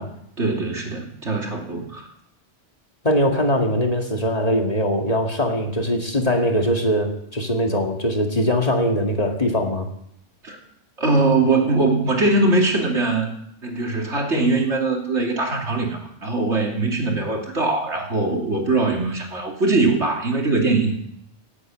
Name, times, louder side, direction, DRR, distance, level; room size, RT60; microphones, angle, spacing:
voice 1, 0.0-2.1 10.4-10.6 11.0-13.4 13.6-20.9, right 3 dB, 70° right, 1 dB, 3.1 m, -21 dB
voice 2, 3.0-9.9, equal, 30° left, 2 dB, 2.0 m, -21 dB
16.5 x 8.4 x 8.9 m, 0.73 s
omnidirectional pair, 1.2 m